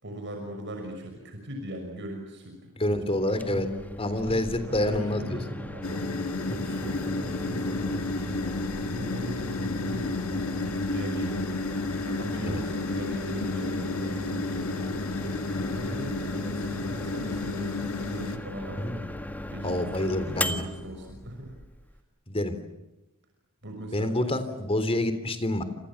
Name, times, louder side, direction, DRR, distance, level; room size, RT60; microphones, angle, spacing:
voice 1, 0.0-2.7 3.1-3.7 4.2-6.2 6.6-11.5 12.0-15.0 15.7-19.2 19.5-21.6 23.6-24.4, equal, 55° right, 3 dB, 6.0 m, -39 dB
voice 2, 2.8-3.7 4.0-5.4 12.4-12.6 18.8-18.9 19.6-20.6 22.3-22.6 23.9-25.6, left 1 dB, 25° left, 10 dB, 3.6 m, -27 dB
Microwave oven, 3.2-22.0, left 1 dB, 10° left, 1.8 m, -37 dB
sound 1, 5.8-18.4, left 3 dB, 70° left, 1.8 m, -32 dB
29.5 x 28.0 x 7.3 m, 0.99 s
head